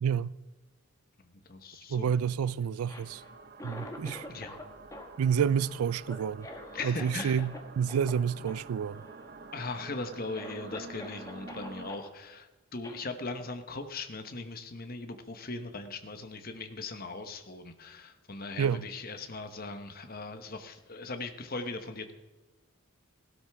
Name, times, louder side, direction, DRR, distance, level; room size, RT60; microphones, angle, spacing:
voice 1, 0.0-0.3 1.9-3.2 3.6-4.3 5.2-6.5 6.8-9.0 18.6-18.8, right 7 dB, 90° right, 0.4 m, -29 dB
voice 2, 1.2-2.1 4.3-4.6 6.7-7.5 9.5-22.1, left 3 dB, 45° left, 1.1 m, -39 dB
Cough, 2.7-4.6 4.9-7.6 7.9-8.1 8.5-8.6 8.9-9.4 9.9-10.0 10.3-12.1 12.8-13.0, left 1 dB, 15° left, 1.3 m, -46 dB
sound 1, 3.0-11.9, right 3 dB, 45° right, 0.7 m, -48 dB
16.5 x 12.5 x 3.5 m
head